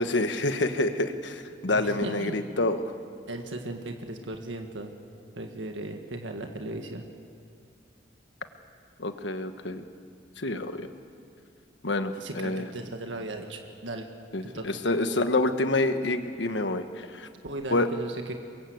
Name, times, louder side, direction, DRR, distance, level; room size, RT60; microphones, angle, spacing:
voice 1, 0.0-2.8 9.0-9.8 10.4-10.9 11.8-12.6 14.3-17.3 17.7-17.9, left 2 dB, 70° left, 8 dB, 1.4 m, -27 dB
voice 2, 1.6-2.4 3.3-4.9 5.3-7.1 12.2-14.1 14.4-14.8 17.4-18.4, right 2 dB, 80° right, 4 dB, 1.7 m, -37 dB
24.5 x 22.0 x 8.0 m, 2.3 s
head